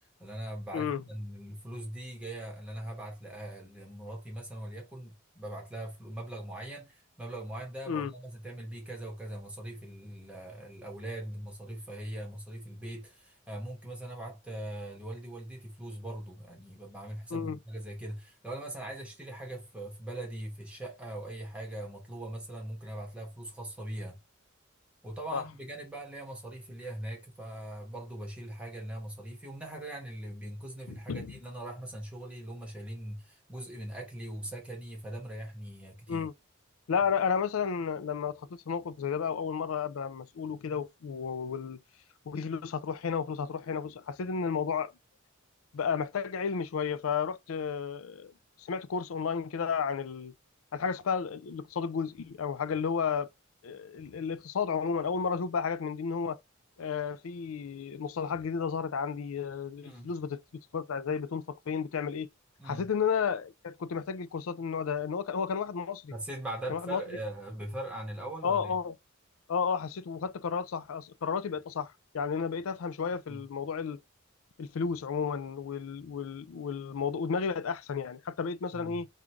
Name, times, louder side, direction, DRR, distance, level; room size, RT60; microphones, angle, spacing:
voice 1, 0.2-24.2 25.0-36.3 59.8-60.1 62.6-62.9 66.1-68.8 73.3-73.4 78.7-79.0, right 1 dB, 5° right, 1.4 m, -41 dB
voice 2, 30.9-31.3 36.1-36.3 36.9-41.8 42.3-44.9 45.7-48.3 48.6-50.3 50.7-53.3 53.6-56.4 56.8-60.4 60.7-62.3 62.6-66.1 66.7-67.0 68.4-68.9 69.5-74.0 74.6-79.1, left 6 dB, 90° left, 0.4 m, -32 dB
3.7 x 2.4 x 4.5 m
head